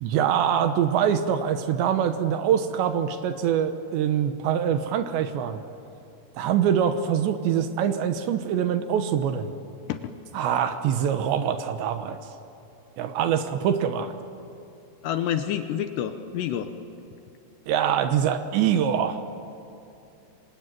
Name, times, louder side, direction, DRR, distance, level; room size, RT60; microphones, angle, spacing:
voice 1, 0.0-5.6 6.4-9.5 10.3-12.2 13.0-14.1 17.7-19.2, right 8 dB, 75° right, 8 dB, 3.1 m, -24 dB
voice 2, 15.0-16.7, left 10 dB, 80° left, 8 dB, 2.7 m, -28 dB
27.5 x 24.0 x 9.1 m, 2.6 s
omnidirectional pair, 5.6 m